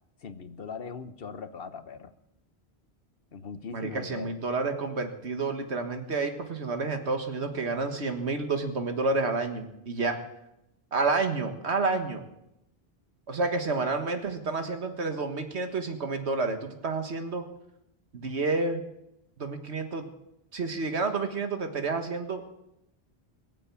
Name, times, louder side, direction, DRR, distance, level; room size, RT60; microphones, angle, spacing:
voice 1, 0.2-2.1 3.3-4.3, left 5 dB, 65° left, 11 dB, 1.1 m, -40 dB
voice 2, 3.7-10.2 10.9-12.3 13.3-17.4 18.1-18.8 19.4-20.1 20.5-22.5, right 3 dB, 85° right, 6 dB, 1.8 m, -29 dB
21.5 x 7.6 x 8.5 m, 0.86 s
omnidirectional pair, 1.1 m